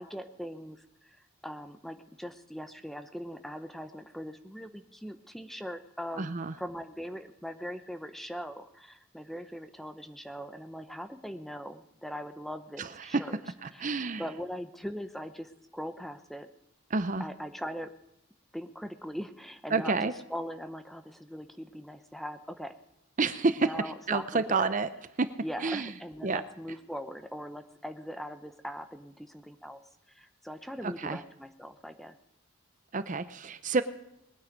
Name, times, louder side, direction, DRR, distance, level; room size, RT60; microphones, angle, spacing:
voice 1, 0.0-13.4 13.7-16.5 17.2-17.9 18.5-22.7 23.6-24.7 25.4-29.8 30.1-32.1, equal, ahead, 9 dB, 0.7 m, -41 dB
voice 2, 6.2-6.5 12.8-13.2 13.6-14.2 16.9-17.2 19.7-20.1 23.2-23.7 24.1-24.9 25.2-25.3 25.6-25.9 26.2-26.4 30.8-31.2 32.9-33.8, right 4 dB, 35° right, 12 dB, 0.6 m, -29 dB
21.0 x 9.5 x 5.2 m, 0.87 s
head